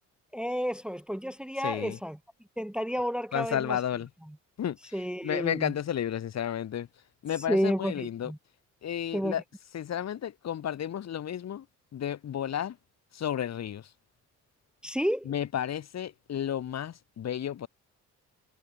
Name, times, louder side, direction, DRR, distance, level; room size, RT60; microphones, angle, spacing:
voice 1, 0.3-2.2 2.6-3.8 4.3-4.4 4.9-5.7 7.5-8.4 9.1-9.3 14.8-15.3, equal, 5° right, 1.1 m, -31 dB
voice 2, 1.6-2.0 3.3-4.1 4.6-4.8 5.2-6.9 7.2-8.3 8.8-9.4 9.7-11.6 11.9-12.8 13.1-13.9 15.3-17.7, left 10 dB, 60° left, 2.7 m, -32 dB
cardioid pair, 90°, 30 cm